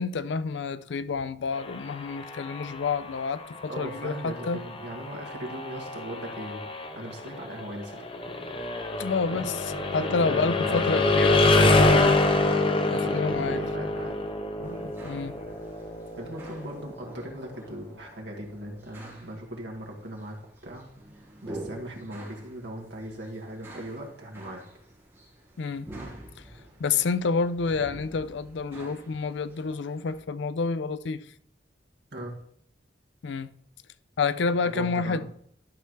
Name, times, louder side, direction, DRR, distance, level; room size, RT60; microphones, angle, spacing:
voice 1, 0.0-4.6 9.0-9.6 9.9-12.2 12.9-13.6 15.0-15.5 25.6-25.9 26.8-31.2 33.2-33.5 34.2-35.3, left 4 dB, 70° left, 0.4 m, -29 dB
sound 1, 1.5-17.3, left 2 dB, 30° left, 0.7 m, -27 dB
voice 2, 3.7-6.6 6.9-8.0 9.3-11.5 12.9-14.2 14.6-14.9 16.2-20.8 21.2-24.6 28.7-28.8 32.1-32.4 34.6-35.3, right 1 dB, 65° right, 1.9 m, -39 dB
sound 2, 14.6-30.2, right 2 dB, 15° right, 3.4 m, -47 dB
11.5 x 5.7 x 3.2 m
head